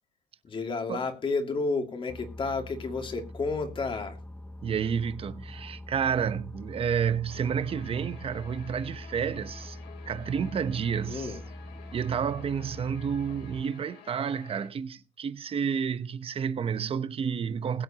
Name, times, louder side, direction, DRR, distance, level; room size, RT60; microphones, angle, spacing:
voice 1, 0.4-4.2 11.1-11.4, left 3 dB, 25° left, 2.5 m, -31 dB
Boat Water vehicle, 2.1-13.6, left 1 dB, 10° left, 0.7 m, -43 dB
voice 2, 4.6-9.8 10.1-11.3 11.9-17.8, right 7 dB, 30° right, 0.9 m, -30 dB
Guitar, 7.3-14.7, left 7 dB, 65° left, 4.0 m, -51 dB
21.0 x 7.8 x 2.9 m
cardioid pair, 135°, 19 cm